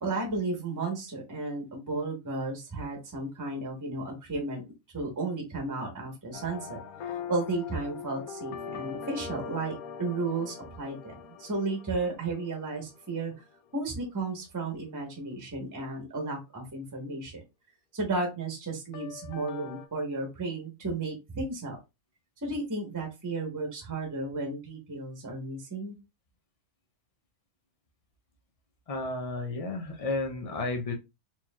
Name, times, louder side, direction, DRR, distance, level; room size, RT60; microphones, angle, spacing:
voice 1, 0.0-4.6 4.9-6.8 7.0-13.3 13.7-17.4 17.9-21.8 22.4-26.0, right 3 dB, 15° right, 1 dB, 0.9 m, -33 dB
sound 1, 6.3-13.5 18.9-19.9, left 7 dB, 80° left, 1.1 m, -42 dB
voice 2, 28.9-30.9, left 3 dB, 60° left, 4 dB, 0.3 m, -32 dB
4.6 x 3.0 x 2.3 m, 0.24 s
omnidirectional pair, 1.6 m